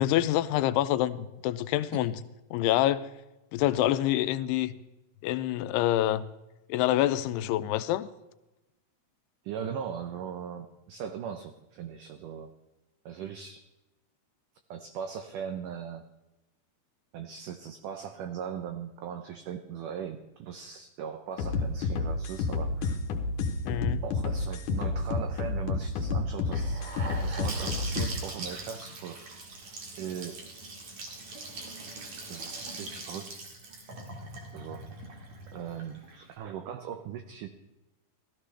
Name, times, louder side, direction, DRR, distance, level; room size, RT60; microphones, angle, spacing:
voice 1, 0.0-2.2 2.5-3.1 3.5-4.7 5.2-6.3 6.7-8.1 23.7-24.0, left 13 dB, 85° left, 2.6 m, -26 dB
voice 2, 9.4-12.5 13.1-13.6 14.7-16.0 17.1-23.0 24.0-26.8 27.2-29.3 30.0-30.4 32.3-33.3 34.5-34.9 35.5-37.5, right 8 dB, 85° right, 1.8 m, -39 dB
sound 1, 21.4-28.1, left 4 dB, 70° left, 2.0 m, -30 dB
Gurgling / Sink (filling or washing) / Bathtub (filling or washing), 26.5-36.3, right 3 dB, 50° right, 2.8 m, -41 dB
16.5 x 13.5 x 3.3 m
omnidirectional pair, 4.6 m